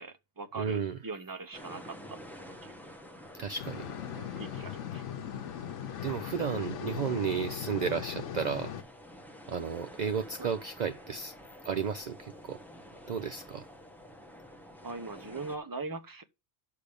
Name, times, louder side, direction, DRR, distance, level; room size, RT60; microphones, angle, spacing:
voice 1, 0.0-2.7 4.2-5.0 10.4-10.5 14.8-16.2, right 3 dB, 20° right, 0.8 m, -41 dB
voice 2, 0.6-1.0 3.3-3.9 6.0-8.7 9.5-11.3 11.6-12.6 13.1-13.7, right 6 dB, 50° right, 0.5 m, -33 dB
sound 1, 1.5-15.6, equal, ahead, 1.0 m, -50 dB
sound 2, 3.6-8.8, left 9 dB, 90° left, 1.1 m, -39 dB
6.8 x 5.1 x 6.8 m
omnidirectional pair, 1.2 m